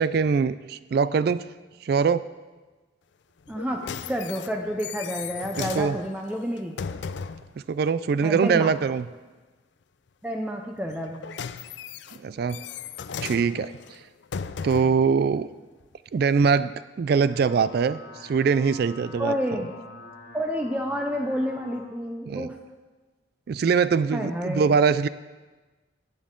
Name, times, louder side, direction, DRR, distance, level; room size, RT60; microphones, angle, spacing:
voice 1, 0.0-1.4 1.8-2.2 5.6-6.0 7.7-9.1 12.2-12.6 13.2-13.7 14.6-15.5 16.1-19.4 22.3-22.5 23.5-25.1, right 5 dB, 55° right, 15 dB, 0.3 m, -23 dB
sound 1, 3.5-7.5 10.9-15.1 15.8-15.9, left 6 dB, 65° left, 0.4 m, -36 dB
voice 2, 3.5-3.8 4.1-6.8 8.2-8.7 10.2-11.2 19.2-19.7 20.3-22.6 24.1-24.8, equal, 5° right, 2 dB, 0.6 m, -29 dB
sound 2, 17.0-21.9, left 2 dB, 80° left, 1.6 m, -45 dB
18.5 x 8.4 x 3.8 m, 1.3 s
head